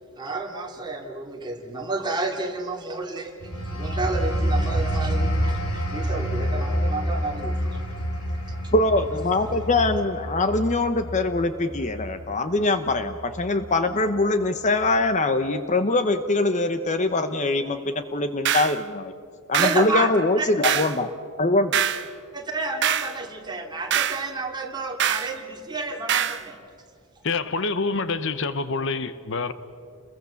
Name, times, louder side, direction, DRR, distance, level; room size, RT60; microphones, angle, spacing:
voice 1, 0.2-3.5 3.8-7.8 8.5-8.6 19.6-20.5 22.3-26.6, right 3 dB, 20° right, 2.8 m, -30 dB
sound 1, 3.4-13.8 14.2-14.5, equal, 75° left, 4.0 m, -28 dB
voice 2, 8.7-19.1 19.5-21.1 21.4-21.8, left 2 dB, 35° left, 0.9 m, -23 dB
sound 2, 18.4-18.8 19.5-19.9 20.6-21.0 21.7-22.0 22.8-23.1 23.9-24.2 25.0-25.3 26.1-26.4, right 9 dB, 55° right, 1.0 m, -23 dB
voice 3, 27.2-29.5, left 4 dB, 60° left, 0.9 m, -26 dB
30.0 x 21.5 x 7.1 m
head